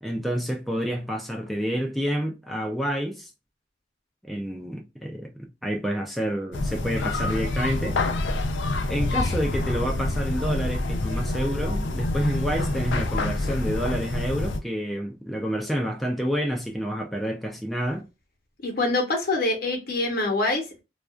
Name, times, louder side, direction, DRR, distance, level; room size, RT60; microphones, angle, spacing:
voice 1, 0.0-3.3 4.2-8.0 8.9-18.1, equal, ahead, 0.4 m, -29 dB
sound 1, 6.5-14.6, left 2 dB, 85° left, 0.5 m, -27 dB
voice 2, 18.6-20.8, left 2 dB, 55° left, 0.9 m, -25 dB
2.4 x 2.3 x 2.3 m
head